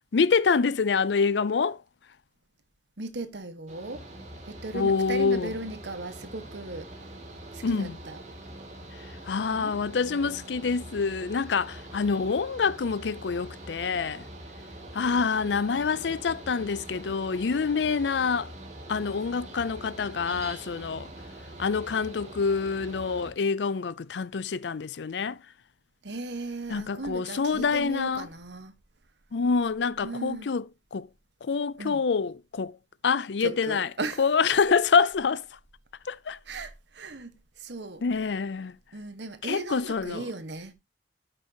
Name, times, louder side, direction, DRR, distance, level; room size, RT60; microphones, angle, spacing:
voice 1, 0.1-1.8 4.7-5.5 7.6-8.0 9.2-14.3 14.9-18.5 18.9-21.1 21.6-25.4 26.7-28.3 29.3-30.6 30.9-31.1 31.4-32.8 33.0-33.9 34.2-35.5 36.1-36.4 38.0-38.7 39.4-40.3, left 5 dB, 75° left, 0.5 m, -26 dB
voice 2, 3.0-4.0 4.5-6.9 7.5-8.2 9.5-10.6 15.7-16.1 26.0-28.7 30.0-30.5 31.8-32.0 33.4-34.2 34.5-34.6 36.5-38.0 38.9-40.7, right 2 dB, 80° right, 1.5 m, -37 dB
Mechanical fan, 3.7-23.3, right 1 dB, 40° right, 2.7 m, -44 dB
13.5 x 6.0 x 2.9 m
head